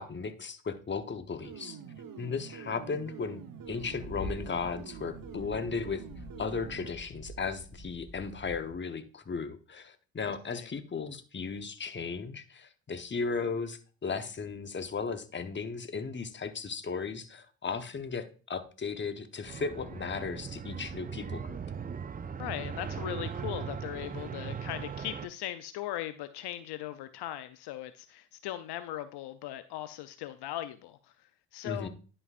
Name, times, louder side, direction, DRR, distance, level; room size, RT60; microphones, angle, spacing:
voice 1, 0.0-1.8 2.2-3.4 3.7-6.0 6.4-21.6 31.6-31.9, left 5 dB, 25° left, 9 dB, 1.0 m, -36 dB
sound 1, 1.4-6.9, right 7 dB, 50° right, 1.1 m, -46 dB
sound 2, 3.6-8.7, left 1 dB, 40° left, 2.1 m, -46 dB
sound 3, 19.5-25.3, right 6 dB, 20° right, 0.4 m, -39 dB
voice 2, 22.4-31.0 31.5-31.9, left 13 dB, 65° left, 11 dB, 0.6 m, -39 dB
11.0 x 5.4 x 2.4 m, 0.37 s
hypercardioid pair, 55°, 44 cm